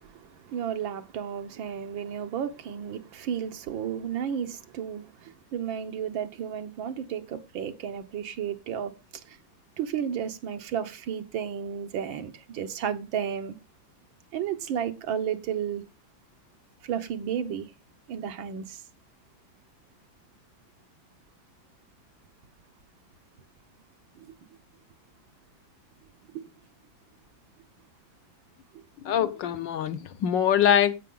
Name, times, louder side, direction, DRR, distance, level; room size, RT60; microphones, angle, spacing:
voice 1, 0.0-9.0 9.3-9.4 9.8-13.6 14.3-15.8 16.8-17.7 18.1-18.8 24.2-24.3 26.3-26.5, right 8 dB, 80° right, 1.8 m, -33 dB
voice 2, 29.0-30.9, left 9 dB, 70° left, 1.5 m, -23 dB
16.5 x 5.7 x 3.8 m
omnidirectional pair, 2.1 m